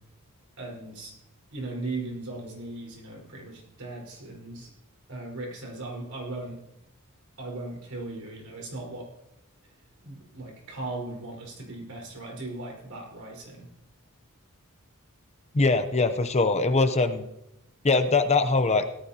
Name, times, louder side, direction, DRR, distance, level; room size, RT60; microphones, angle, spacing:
voice 1, 0.6-1.1 1.5-4.7 5.1-6.6 7.4-9.1 10.0-13.7, right 2 dB, 70° right, -1 dB, 4.7 m, -38 dB
voice 2, 15.5-17.3 17.8-18.8, left 3 dB, 30° left, 9 dB, 0.7 m, -22 dB
17.5 x 14.0 x 2.9 m, 0.85 s
head